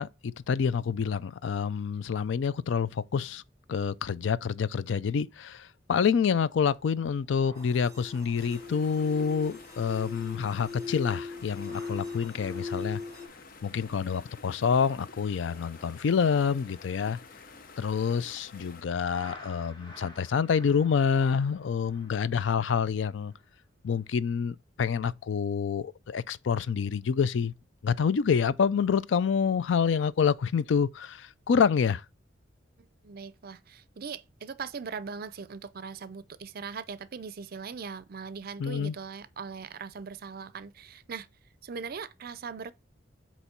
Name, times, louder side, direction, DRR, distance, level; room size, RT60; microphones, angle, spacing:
voice 1, 0.0-3.4 3.7-13.0 13.6-17.2 17.8-23.3 23.8-27.5 27.8-32.0 38.6-39.0, left 6 dB, 75° left, 0.4 m, -27 dB
sound 1, 6.4-10.5 10.8-11.1 11.5-14.8 15.1-18.4 19.1-23.6 24.0-24.2, left 1 dB, 25° left, 1.7 m, -55 dB
sound 2, 7.6-13.3, left 4 dB, 15° right, 0.7 m, -40 dB
sound 3, 8.3-18.8, left 4 dB, 50° left, 0.7 m, -50 dB
voice 2, 32.8-41.3 41.6-42.7, right 5 dB, 55° right, 0.5 m, -40 dB
8.1 x 3.1 x 4.3 m
head